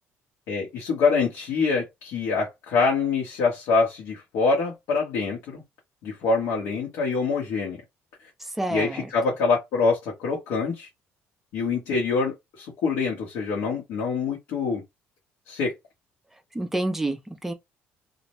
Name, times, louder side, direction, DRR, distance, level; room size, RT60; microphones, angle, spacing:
voice 1, 0.5-5.6 6.0-7.8 8.7-10.9 11.5-14.8 15.5-15.7, left 4 dB, 75° left, 1.0 m, -25 dB
voice 2, 8.4-9.1 16.5-17.5, right 2 dB, 5° right, 0.4 m, -28 dB
2.5 x 2.0 x 2.9 m
cardioid pair, 160°, 5 cm